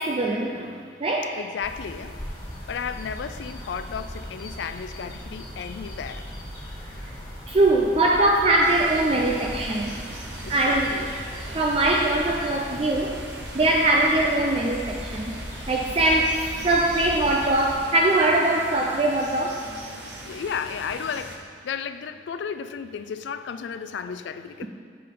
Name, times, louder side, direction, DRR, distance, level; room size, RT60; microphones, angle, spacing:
voice 1, 0.0-1.4 7.0-7.1 7.5-10.0 10.5-11.0 11.5-13.2 13.5-15.4 15.7-16.4 16.6-19.6, right 2 dB, 30° right, -1 dB, 0.4 m, -22 dB
voice 2, 1.4-2.2 2.7-6.3 10.5-11.1 20.2-24.7, left 6 dB, 75° left, 11 dB, 0.3 m, -33 dB
sound 1, 1.6-17.8, equal, 25° left, 1.6 m, -38 dB
sound 2, 8.6-21.4, right 1 dB, 80° right, 0.9 m, -40 dB
7.6 x 6.6 x 3.7 m, 2.1 s
head